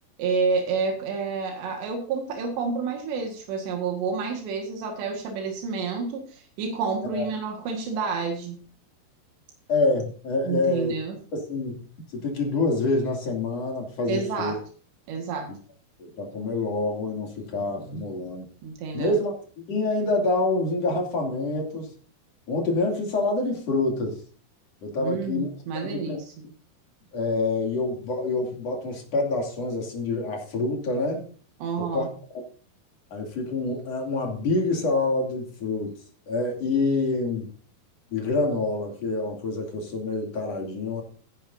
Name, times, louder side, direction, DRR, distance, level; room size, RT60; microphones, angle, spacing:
voice 1, 0.2-8.6 10.4-11.2 14.1-14.6 15.1-15.5 18.6-19.2 25.0-26.3 31.6-32.1, right 5 dB, 90° right, 2 dB, 4.0 m, -29 dB
voice 2, 9.7-10.9 11.3-11.8 12.1-14.6 16.0-18.5 18.9-19.3 19.7-21.9 22.5-24.2 24.8-25.5 25.8-26.2 27.1-31.3 31.8-32.1 33.1-35.9 36.3-37.5 38.1-41.0, left 3 dB, 40° left, 1 dB, 3.5 m, -26 dB
16.5 x 10.0 x 2.7 m, 0.42 s
omnidirectional pair, 4.8 m